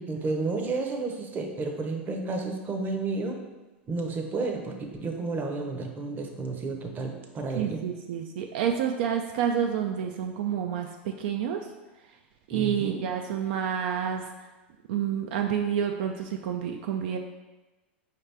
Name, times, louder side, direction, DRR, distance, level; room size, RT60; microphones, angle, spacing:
voice 1, 0.0-3.4 3.9-7.8 12.5-13.0, right 3 dB, 30° right, 3 dB, 0.7 m, -31 dB
voice 2, 7.5-11.6 12.5-14.5 14.9-17.2, right 8 dB, 70° right, 3 dB, 0.4 m, -29 dB
4.8 x 2.9 x 3.4 m, 1.2 s
hypercardioid pair, 105°, 6 cm